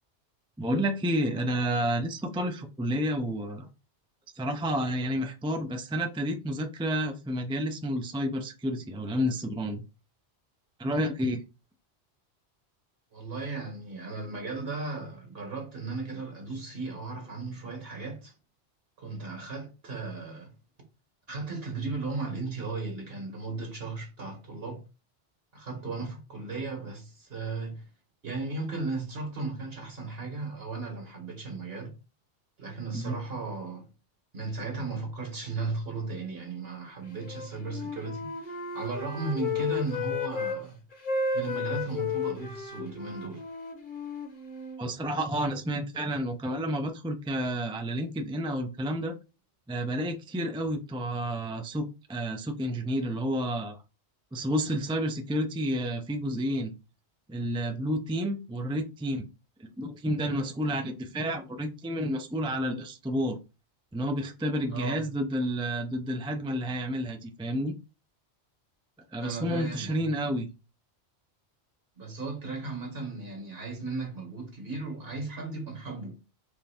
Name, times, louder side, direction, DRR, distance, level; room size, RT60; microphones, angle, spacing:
voice 1, 0.6-3.7 4.4-9.8 10.8-11.4 32.9-33.2 44.8-49.1 49.7-53.8 54.3-56.7 57.3-59.2 59.6-63.4 63.9-67.7 69.1-70.5, equal, 10° right, 0.3 m, -30 dB
voice 2, 13.1-18.3 19.0-20.5 21.3-24.8 25.5-27.9 28.2-32.0 32.6-33.9 34.3-40.8 41.3-43.4 64.7-65.0 69.2-70.0 72.0-76.2, right 3 dB, 60° right, 1.8 m, -36 dB
Wind instrument woodwind instrument, 37.2-40.6 40.9-44.8, left 5 dB, 50° left, 1.2 m, -33 dB
4.5 x 3.3 x 3.5 m
omnidirectional pair, 1.1 m